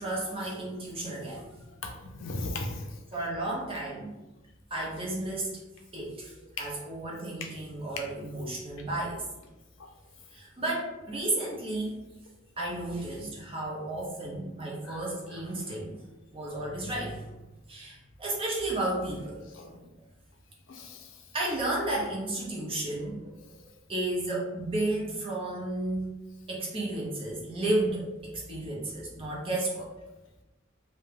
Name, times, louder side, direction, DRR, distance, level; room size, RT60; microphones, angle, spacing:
voice 1, 0.0-1.5 3.1-4.1 4.7-5.5 5.9-9.3 10.3-12.0 12.6-16.0 16.3-17.2 17.7-19.4 21.3-23.5 23.9-26.1 26.5-29.9, right 2 dB, 30° right, -4 dB, 0.6 m, -33 dB
voice 2, 1.8-2.9 6.6-6.7 9.8-9.9 14.8-15.0 19.5-19.7 20.7-21.1, left 2 dB, 65° left, 2 dB, 0.4 m, -37 dB
2.3 x 2.1 x 3.2 m, 1.0 s
head